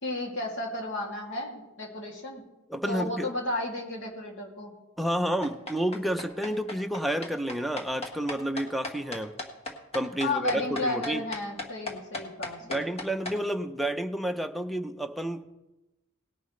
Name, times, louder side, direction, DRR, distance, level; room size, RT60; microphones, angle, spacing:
voice 1, 0.0-2.4 2.9-4.7 10.2-12.9, left 2 dB, 65° left, -1 dB, 2.6 m, -33 dB
voice 2, 2.7-3.3 5.0-9.3 9.9-11.2 12.7-15.4, right 1 dB, ahead, 8 dB, 0.6 m, -30 dB
sound 1, 5.4-13.4, left 2 dB, 30° left, 1.5 m, -36 dB
18.5 x 10.5 x 3.2 m, 1.0 s
head